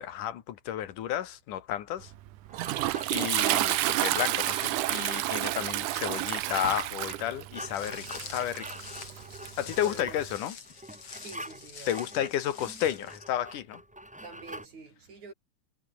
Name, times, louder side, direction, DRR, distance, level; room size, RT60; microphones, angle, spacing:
voice 1, 0.0-2.1 3.1-8.7 9.6-10.6 11.9-13.8, left 11 dB, 85° left, 3.1 m, -32 dB
sound 1, 2.0-14.7, right 1 dB, 5° right, 0.7 m, -47 dB
Toilet flush, 2.0-10.4, right 16 dB, 85° right, 2.3 m, -30 dB
Walk footsteps, 7.7-13.2, left 6 dB, 50° left, 3.9 m, -46 dB
voice 2, 9.8-10.2 11.2-11.9 14.2-15.3, right 4 dB, 65° right, 7.1 m, -47 dB
omnidirectional pair, 3.5 m